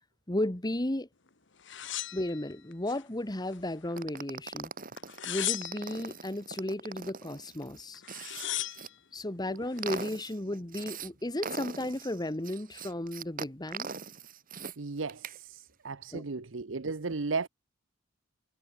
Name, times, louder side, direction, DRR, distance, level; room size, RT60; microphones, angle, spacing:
voice 1, 0.3-1.1 2.1-4.7 5.2-8.0 9.1-13.9 16.1-16.3, left 1 dB, 20° left, 1.5 m, -34 dB
sound 1, 1.6-3.0 3.4-4.2 5.0-6.1 7.6-7.7 7.9-8.9 9.6-10.1, left 13 dB, 65° left, 1.6 m, -37 dB
sound 2, 4.0-8.9 9.4-11.1 11.4-14.8 15.1-15.4, right 5 dB, 45° right, 3.5 m, -41 dB
voice 2, 14.8-17.5, right 4 dB, 70° right, 0.9 m, -35 dB
head